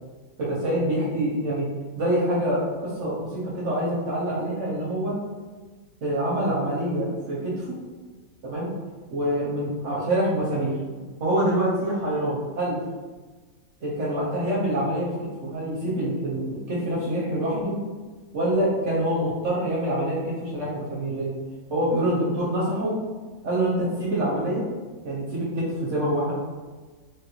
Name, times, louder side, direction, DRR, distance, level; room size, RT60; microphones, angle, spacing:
voice 1, 0.4-1.7 2.0-5.2 6.0-7.8 8.4-8.7 9.1-10.8 11.2-12.8 13.8-17.8 18.3-21.4 21.7-23.0 23.4-24.7 25.0-26.3, right 1 dB, 60° right, -6 dB, 0.9 m, -26 dB
3.3 x 2.5 x 2.9 m, 1.3 s
omnidirectional pair, 1.6 m